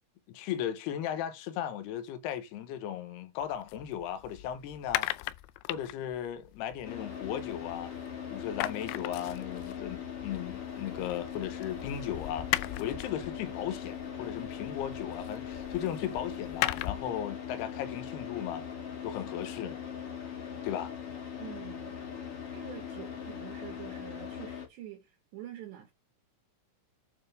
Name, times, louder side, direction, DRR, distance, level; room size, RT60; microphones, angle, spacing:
voice 1, 0.3-5.1 5.7-7.9 8.3-18.7 19.0-19.8 20.6-20.9, left 10 dB, 70° left, 2.7 m, -36 dB
sound 1, 3.4-8.1 8.3-17.2, left 18 dB, 90° left, 2.6 m, -38 dB
Car / Idling, 6.8-24.7, left 8 dB, 40° left, 2.3 m, -40 dB
voice 2, 21.4-22.0 22.5-25.9, right 12 dB, 65° right, 3.4 m, -46 dB
9.3 x 6.0 x 3.5 m
omnidirectional pair, 5.8 m